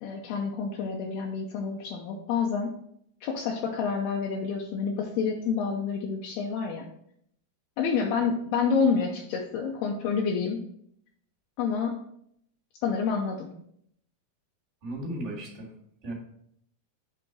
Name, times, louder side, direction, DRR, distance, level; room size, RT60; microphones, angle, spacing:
voice 1, 0.0-2.7 3.2-6.9 7.8-10.6 11.6-12.0 12.8-13.5, left 5 dB, 80° left, 0 dB, 2.4 m, -28 dB
voice 2, 14.8-15.7 16.0-16.1, right 1 dB, 85° right, -6 dB, 0.6 m, -35 dB
7.6 x 3.7 x 4.5 m, 0.70 s
omnidirectional pair, 4.9 m